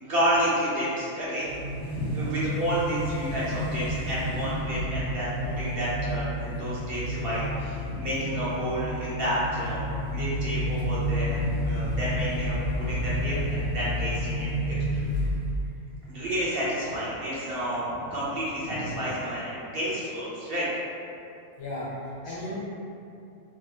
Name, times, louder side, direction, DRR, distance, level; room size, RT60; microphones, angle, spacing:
voice 1, 0.0-1.5 1.9-15.0 16.1-20.7 22.3-22.4, equal, 55° right, -8 dB, 0.7 m, -30 dB
sound 1, 1.4-15.7, equal, 90° right, 1.3 m, -30 dB
voice 2, 21.6-22.5, left 1 dB, 80° left, -7 dB, 1.3 m, -36 dB
3.5 x 2.7 x 2.2 m, 2.6 s
omnidirectional pair, 1.4 m